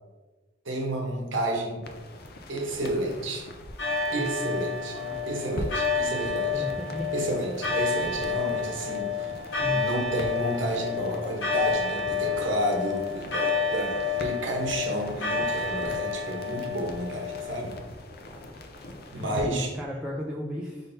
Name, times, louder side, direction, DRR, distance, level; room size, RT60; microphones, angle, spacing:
voice 1, 0.6-1.8 2.5-3.5 4.1-5.0 5.3-6.6 7.1-9.3 9.7-17.7 19.1-19.7, right 1 dB, 75° right, 1 dB, 1.0 m, -31 dB
sound 1, 1.8-19.4, left 1 dB, 55° left, 0.5 m, -43 dB
sound 2, 3.8-17.7, left 5 dB, 75° left, 1.1 m, -30 dB
voice 2, 4.1-5.6 6.5-7.2 9.6-10.0 19.2-20.9, equal, 5° right, -3 dB, 0.4 m, -35 dB
sound 3, 4.9-14.4, right 1 dB, 30° left, 1.4 m, -49 dB
5.1 x 3.8 x 2.7 m, 1.2 s
head